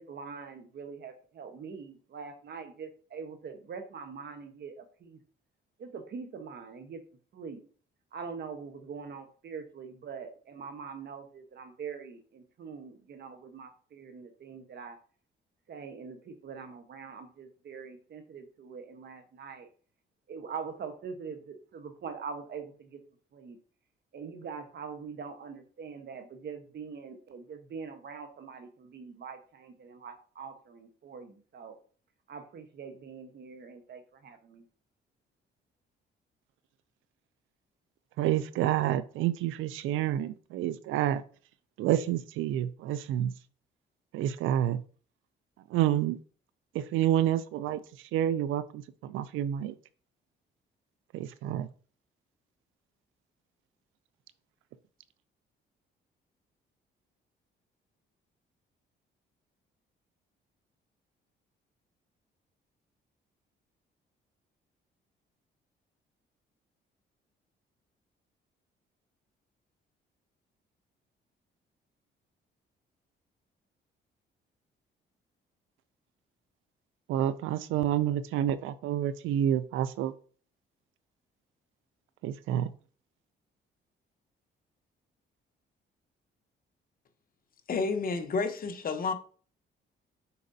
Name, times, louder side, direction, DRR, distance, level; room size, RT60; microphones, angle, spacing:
voice 1, 0.0-5.2 5.8-7.0 7.3-7.6 8.1-15.0 15.7-19.7 20.3-23.0 23.3-23.6 24.1-31.8 32.3-34.7, right 5 dB, 55° right, 1.1 m, -43 dB
voice 2, 38.2-41.2 41.8-43.3 44.1-44.8 45.7-46.2 46.7-49.8 51.1-51.7 77.1-80.1 82.2-82.7, right 11 dB, 85° right, 0.4 m, -29 dB
voice 3, 87.7-89.1, left 4 dB, 45° left, 0.8 m, -30 dB
6.7 x 5.1 x 2.7 m
cardioid pair, 90°, 20 cm